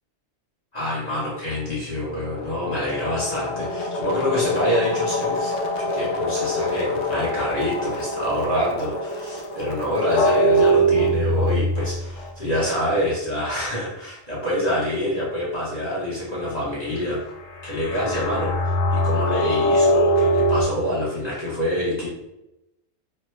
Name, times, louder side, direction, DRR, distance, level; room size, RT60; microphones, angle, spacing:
voice 1, 0.7-17.2 17.6-22.1, equal, 40° left, -7 dB, 0.9 m, -26 dB
sound 1, 2.2-12.3 17.5-20.6, equal, 75° left, 0.8 m, -23 dB
3.2 x 2.1 x 3.1 m, 0.91 s
omnidirectional pair, 1.2 m